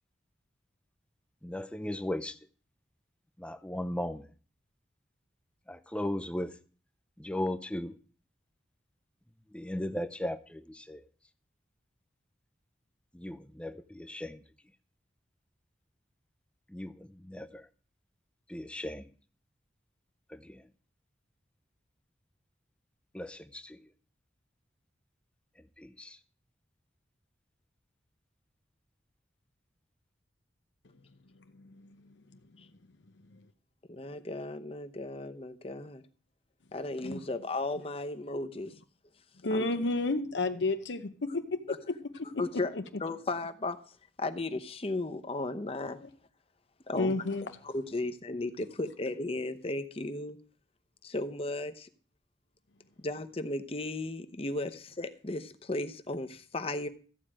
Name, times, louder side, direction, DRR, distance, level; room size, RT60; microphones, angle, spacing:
voice 1, 1.4-2.4 3.4-4.3 5.7-6.6 7.2-8.0 9.5-11.0 13.1-14.4 16.7-17.7 18.5-19.1 20.3-20.6 23.1-23.8 25.8-26.2, left 1 dB, 5° left, 0.6 m, -37 dB
voice 2, 31.5-32.0 37.0-37.2 39.4-41.8 42.2-42.4 42.7-42.8 46.9-47.4, left 2 dB, 80° left, 0.8 m, -31 dB
voice 3, 33.9-36.0 36.7-38.7 39.5-39.7 42.4-42.7 43.0-43.8 44.2-46.0 46.9-47.2 47.6-50.4 51.0-51.9 53.0-56.9, left 2 dB, 30° left, 0.9 m, -35 dB
14.0 x 4.9 x 8.8 m
head